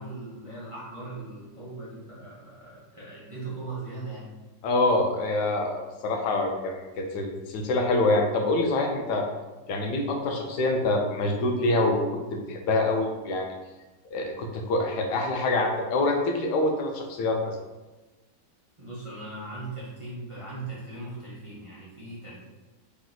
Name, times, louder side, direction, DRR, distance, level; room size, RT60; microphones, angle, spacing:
voice 1, 0.0-4.3 18.8-22.4, right 2 dB, 25° right, -9 dB, 0.8 m, -39 dB
voice 2, 4.6-5.8 6.0-9.3 9.7-12.0 12.3-13.6 14.1-17.6, left 2 dB, 80° left, 2 dB, 1.2 m, -25 dB
3.5 x 3.0 x 3.9 m, 1.2 s
omnidirectional pair, 1.8 m